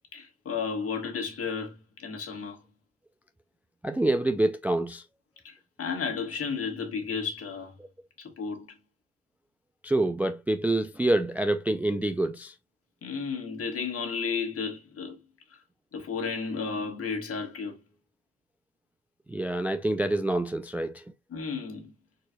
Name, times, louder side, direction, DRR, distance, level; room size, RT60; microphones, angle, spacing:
voice 1, 0.1-2.6 5.4-7.8 8.2-8.8 13.0-15.2 15.5-15.6 15.9-17.8 21.3-21.9, left 5 dB, 50° left, 1.7 m, -33 dB
voice 2, 3.8-5.0 9.8-12.5 19.3-21.0, right 1 dB, 5° right, 0.4 m, -26 dB
4.5 x 4.1 x 2.2 m
cardioid pair, 90°, 30 cm